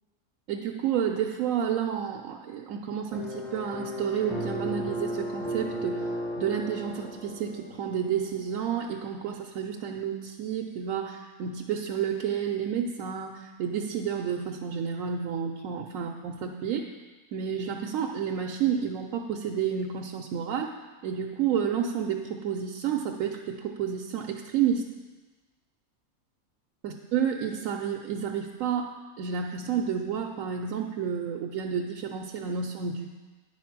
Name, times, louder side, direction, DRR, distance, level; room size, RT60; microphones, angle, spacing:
voice 1, 0.5-6.1 6.4-16.9 17.3-20.7 21.0-24.9 26.8-33.1, right 8 dB, 70° right, 1 dB, 0.9 m, -30 dB
sound 1, 3.1-8.3, equal, ahead, 0.6 m, -35 dB
9.3 x 4.8 x 5.9 m, 1.3 s
omnidirectional pair, 1.5 m